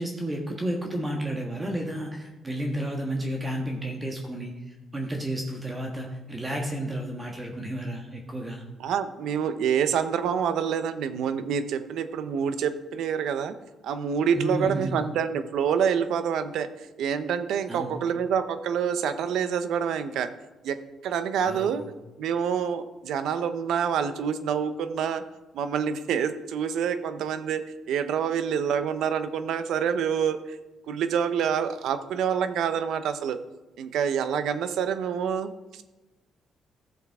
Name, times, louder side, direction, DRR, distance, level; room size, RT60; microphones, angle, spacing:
voice 1, 0.0-8.6 14.3-15.0 17.7-18.0 21.4-21.8, right 1 dB, 20° right, 0 dB, 1.4 m, -32 dB
voice 2, 8.8-13.5 13.8-16.7 17.0-20.3 20.6-20.8 21.0-21.8 22.2-25.2 25.5-30.6 30.9-33.4 33.8-35.8, right 7 dB, 80° right, 11 dB, 0.7 m, -27 dB
14.5 x 7.3 x 3.6 m, 1.1 s
cardioid pair, 90°, 0 cm